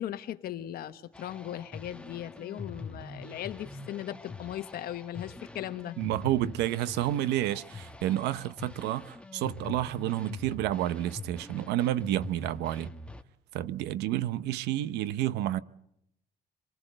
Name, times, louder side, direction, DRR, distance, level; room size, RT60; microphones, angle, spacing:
voice 1, 0.0-6.0, left 12 dB, 65° left, 1.4 m, -38 dB
sound 1, 1.1-13.2, left 3 dB, 5° left, 1.2 m, -44 dB
voice 2, 6.0-12.9 13.5-15.6, right 13 dB, 85° right, 0.8 m, -30 dB
26.0 x 19.5 x 7.9 m
cardioid pair, 110°, 17 cm